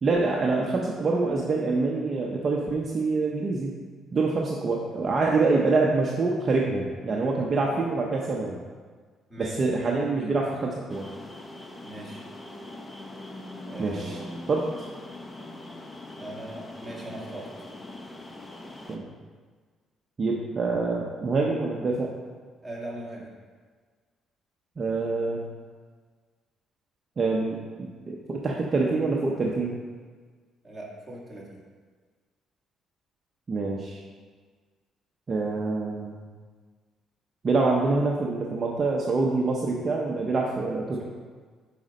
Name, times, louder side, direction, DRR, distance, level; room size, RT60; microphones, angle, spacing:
voice 1, 0.0-3.7 4.1-8.6 9.4-11.1 13.8-14.2 14.5-14.7 18.9-19.1 20.2-22.1 24.8-25.4 27.2-29.8 33.5-34.0 35.3-36.2 37.4-41.0, right 3 dB, 30° right, -2 dB, 0.7 m, -26 dB
sound 1, 10.9-19.0, left 1 dB, 15° left, 0.6 m, -42 dB
voice 2, 11.8-12.2 13.7-14.3 16.2-17.5 22.6-23.4 30.6-31.6, right 1 dB, 5° right, -6 dB, 1.8 m, -39 dB
7.9 x 5.0 x 5.2 m, 1.5 s
cardioid pair, 160°, 0 cm